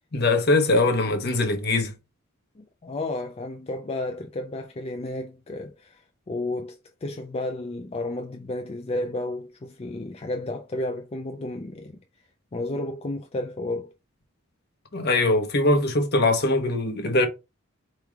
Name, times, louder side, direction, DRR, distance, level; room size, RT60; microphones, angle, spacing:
voice 1, 0.1-1.9 14.9-17.3, left 2 dB, 55° left, 1.1 m, -22 dB
voice 2, 2.6-12.0 12.5-13.9, left 2 dB, 30° left, 0.4 m, -32 dB
4.6 x 3.2 x 3.5 m
head